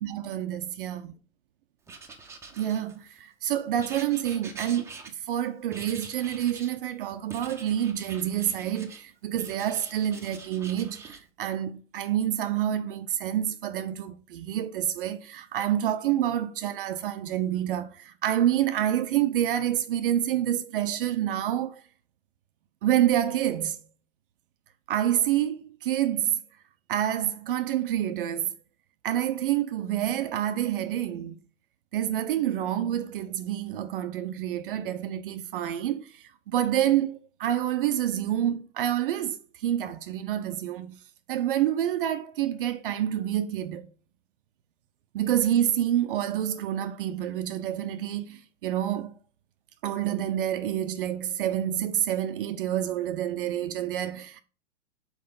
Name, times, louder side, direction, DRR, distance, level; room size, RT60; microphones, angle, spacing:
voice 1, 0.0-1.0 2.6-4.9 5.3-21.8 22.8-23.8 24.9-26.4 26.9-28.6 29.0-31.4 31.9-41.0 41.3-43.9 45.1-49.2 49.8-54.4, right 11 dB, 45° right, 0.6 m, -28 dB
Writing, 1.9-3.2 3.8-5.4 5.7-6.8 7.3-9.0 9.3-11.2, right 4 dB, 5° right, 0.8 m, -45 dB
5.6 x 5.0 x 5.2 m
hypercardioid pair, 120°, 38 cm